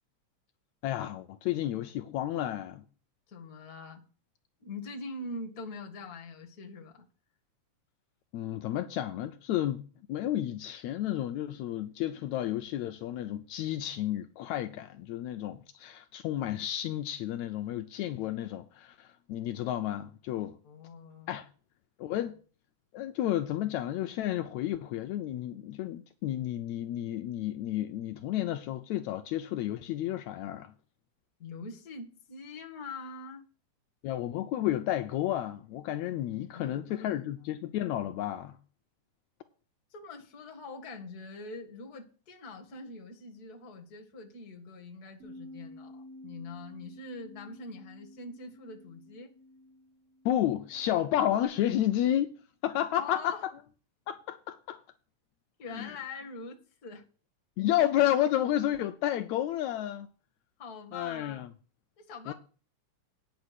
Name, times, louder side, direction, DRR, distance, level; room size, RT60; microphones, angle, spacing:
voice 1, 0.8-2.8 8.3-9.8 10.1-20.6 21.3-21.5 22.0-22.4 22.9-30.7 34.0-38.6 50.3-52.3 52.6-53.5 54.1-54.8 55.7-56.0 57.6-60.1 60.9-61.5 62.3-62.4, left 12 dB, 75° left, 1.9 m, -31 dB
voice 2, 3.3-4.0 4.6-7.1 20.6-21.3 31.4-33.4 36.5-37.3 39.9-49.3 52.9-53.5 55.6-57.1 60.6-61.5 62.0-62.3, left 3 dB, 35° left, 1.9 m, -44 dB
Bass guitar, 45.2-51.4, left 1 dB, 25° right, 4.5 m, -51 dB
9.4 x 6.7 x 8.0 m
omnidirectional pair, 3.4 m